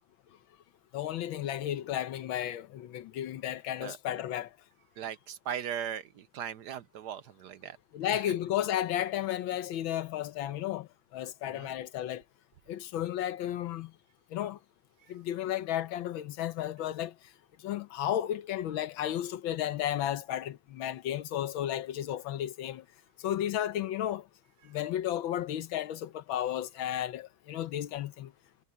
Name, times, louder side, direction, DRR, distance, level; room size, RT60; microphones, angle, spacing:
voice 1, 0.9-4.5 7.9-12.2 12.7-13.9 14.3-14.6 15.1-17.1 17.6-22.8 23.2-24.3 24.6-28.3, left 11 dB, 90° left, 1.6 m, -33 dB
voice 2, 5.0-7.8 8.1-8.2 11.5-11.7, right 9 dB, 65° right, 1.2 m, -38 dB
omnidirectional pair, 2.1 m